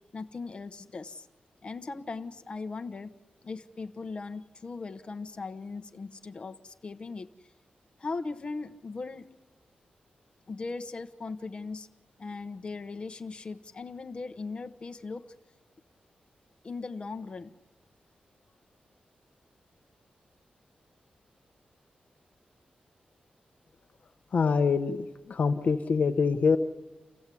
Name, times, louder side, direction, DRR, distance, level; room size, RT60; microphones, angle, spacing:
voice 1, 0.1-1.3 1.6-3.1 3.4-7.3 8.0-9.2 10.5-11.9 12.2-15.3 16.6-17.5, left 4 dB, 35° left, 8 dB, 1.0 m, -38 dB
voice 2, 24.3-26.6, left 5 dB, 60° left, 10 dB, 0.9 m, -25 dB
28.5 x 14.5 x 8.4 m, 1.1 s
wide cardioid pair, 140°, 3 cm